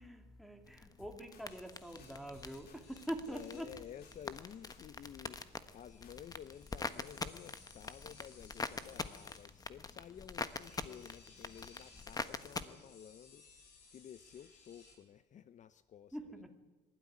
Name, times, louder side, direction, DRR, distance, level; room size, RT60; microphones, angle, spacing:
voice 1, 0.0-3.8 16.1-16.5, equal, ahead, 6 dB, 2.6 m, -44 dB
sound 1, 0.6-12.6, left 4 dB, 20° left, 1.2 m, -45 dB
sound 2, 1.0-1.7 2.0-3.1 3.3-4.4 4.7-5.8 6.0-6.4, left 5 dB, 65° left, 3.1 m, -62 dB
sound 3, 1.5-15.0, left 4 dB, 85° left, 5.5 m, -62 dB
voice 2, 3.3-16.5, left 9 dB, 45° left, 14 dB, 0.7 m, -53 dB
24.5 x 12.5 x 9.8 m, 1.2 s
cardioid pair, 110°, 17 cm